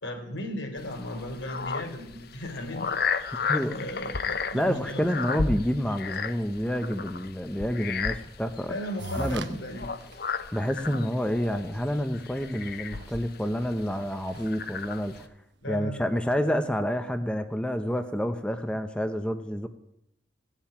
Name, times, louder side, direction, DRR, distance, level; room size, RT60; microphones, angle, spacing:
voice 1, 0.0-3.4 3.7-5.0 8.7-9.9 15.6-16.2, left 1 dB, 85° left, 3 dB, 3.7 m, -36 dB
sound 1, 0.8-15.2, left 5 dB, 55° left, 0.8 m, -34 dB
voice 2, 4.5-8.7 9.1-9.6 10.5-15.3 15.7-19.7, equal, 5° left, 8 dB, 0.7 m, -28 dB
sound 2, 9.0-9.5 10.0-10.1 10.8-10.9 11.2-11.3 11.6-15.3, right 3 dB, 75° right, 1.0 m, -42 dB
16.5 x 7.4 x 9.8 m, 0.79 s
head